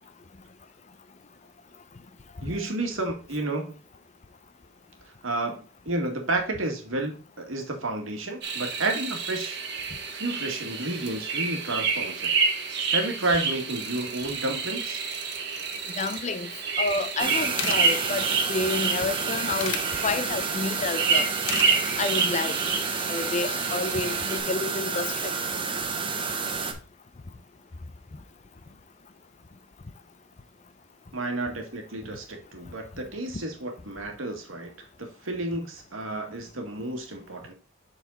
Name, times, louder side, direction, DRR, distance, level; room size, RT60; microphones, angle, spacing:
voice 1, 2.4-3.8 5.2-9.6 10.1-12.3 12.6-15.0 31.1-37.5, right 2 dB, 85° right, 1.8 m, -31 dB
sound 1, 8.4-24.4, right 5 dB, 55° right, 1.4 m, -29 dB
voice 2, 16.0-16.5 16.8-19.8 20.0-21.3 22.0-22.6 23.1-25.3, left 3 dB, 35° left, 0.5 m, -29 dB
sound 2, 17.2-26.7, right 5 dB, 25° right, 0.9 m, -30 dB
sound 3, 17.4-17.8 19.0-19.8 21.2-21.7 22.1-22.3, left 8 dB, 70° left, 0.8 m, -32 dB
7.3 x 4.1 x 4.0 m
head